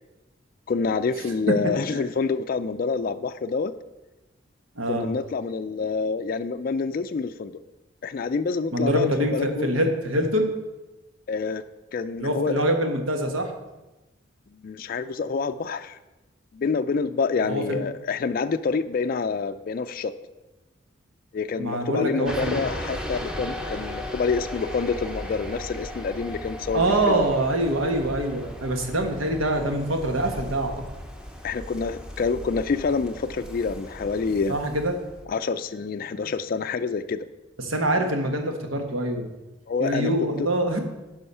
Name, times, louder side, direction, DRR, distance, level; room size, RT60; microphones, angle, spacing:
voice 1, 0.7-3.7 4.9-7.5 8.0-9.8 11.3-11.6 11.9-12.6 14.5-16.0 16.5-20.1 21.3-27.2 31.4-34.6 35.3-37.3 39.7-40.1 40.4-40.5, left 4 dB, 45° left, 9 dB, 0.3 m, -27 dB
voice 2, 4.8-5.1 8.7-10.5 12.2-13.5 17.4-17.8 21.6-22.6 26.7-30.7 34.5-35.0 37.6-39.3 39.8-40.8, right 1 dB, 90° right, 4 dB, 1.3 m, -24 dB
sound 1, 22.2-35.3, left 1 dB, 5° right, 0.8 m, -37 dB
9.9 x 5.6 x 5.5 m, 1.0 s
head